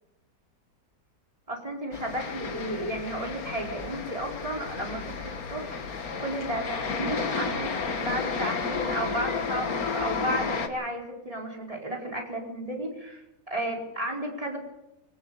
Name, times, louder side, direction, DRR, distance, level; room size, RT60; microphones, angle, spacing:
voice 1, 1.5-5.8 6.2-14.6, right 1 dB, 15° right, -1 dB, 4.4 m, -33 dB
sound 1, 1.9-10.7, left 5 dB, 50° left, 1.9 m, -32 dB
22.0 x 18.0 x 6.9 m, 0.90 s
omnidirectional pair, 2.0 m